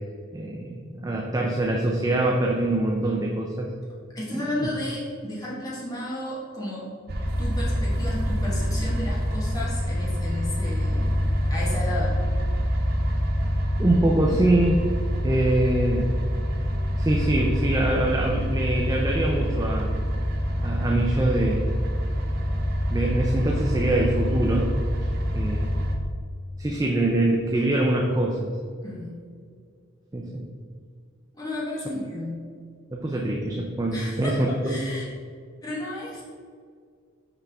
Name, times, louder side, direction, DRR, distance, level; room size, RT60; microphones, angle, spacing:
voice 1, 0.3-3.7 4.6-4.7 13.8-14.8 15.2-16.1 16.9-19.9 20.6-21.7 22.9-24.7 25.3-25.7 26.6-28.5 30.1-30.4 32.9-34.8, right 1 dB, 15° right, -1 dB, 0.4 m, -24 dB
voice 2, 4.1-6.9 7.4-11.2 11.5-12.2 28.8-29.2 31.3-32.4 33.9-35.0 35.6-36.2, left 1 dB, 15° left, -6 dB, 1.2 m, -33 dB
sound 1, 7.1-26.0, equal, 45° right, 0.7 m, -26 dB
6.0 x 5.5 x 3.4 m, 2.1 s
head